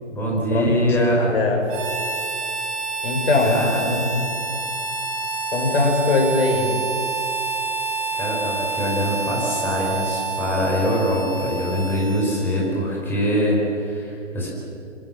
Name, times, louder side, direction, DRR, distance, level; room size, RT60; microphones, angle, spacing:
voice 1, 0.1-1.4 3.4-3.8 8.2-14.5, equal, 5° left, -4 dB, 5.4 m, -23 dB
voice 2, 1.3-1.6 3.0-3.5 3.8-4.1 5.5-6.7, left 3 dB, 50° left, 1 dB, 6.9 m, -20 dB
Harmonica, 1.7-12.8, right 4 dB, 25° right, 7.1 m, -28 dB
27.0 x 25.5 x 7.5 m, 2.6 s
figure-of-eight pair, 145°, 38 cm